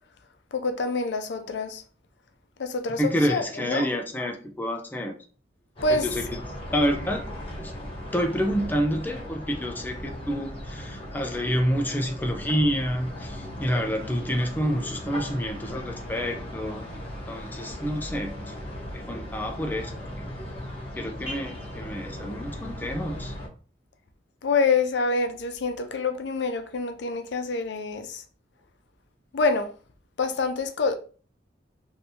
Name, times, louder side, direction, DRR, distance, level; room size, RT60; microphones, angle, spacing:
voice 1, 0.5-1.8 2.6-3.9 5.8-6.1 24.4-28.2 29.3-29.7 30.2-30.9, left 3 dB, 70° left, 0.5 m, -26 dB
voice 2, 3.0-5.2 5.9-6.2 6.7-7.3 7.6-7.7 8.1-17.0 17.3-18.5 18.9-19.9 21.0-23.3, equal, 10° left, 0.4 m, -28 dB
sound 1, 5.8-23.5, left 1 dB, 30° left, 1.0 m, -37 dB
3.3 x 2.7 x 2.7 m
head